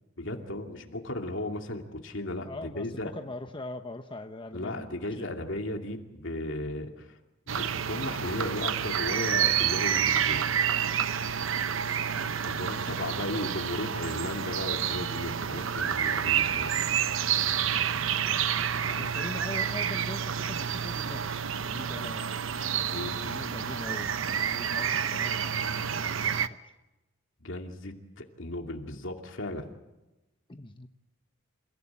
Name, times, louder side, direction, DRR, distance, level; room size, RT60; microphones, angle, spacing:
voice 1, 0.2-3.1 4.5-7.1 7.5-10.5 12.3-16.7 22.9-23.2 27.4-29.7, left 1 dB, 65° left, 4 dB, 2.6 m, -35 dB
voice 2, 2.4-5.4 12.1-12.6 18.2-18.4 18.9-22.4 23.0-26.6 30.5-30.9, left 2 dB, 25° left, 6 dB, 0.9 m, -42 dB
sound 1, 7.5-26.5, right 8 dB, 75° right, 0.9 m, -29 dB
28.5 x 16.5 x 8.7 m, 1.0 s
head